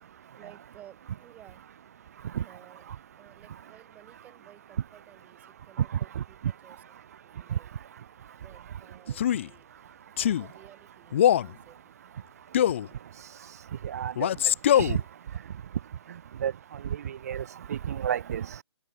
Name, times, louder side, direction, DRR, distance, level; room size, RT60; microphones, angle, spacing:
voice 1, 0.4-1.7 2.4-2.9 3.2-6.8 7.2-7.7 8.4-9.7 10.1-12.1, right 12 dB, 10° right, 5.9 m, -55 dB
Male speech man speaking, 9.1-9.5 10.2-10.5 11.1-11.5 12.5-12.9 14.2-15.0, left 10 dB, 30° left, 0.6 m, -22 dB
voice 2, 13.8-14.3 14.7-15.0 16.4-16.5 16.8-18.5, right 9 dB, 35° right, 0.9 m, -30 dB
hypercardioid pair, 160°, 14 cm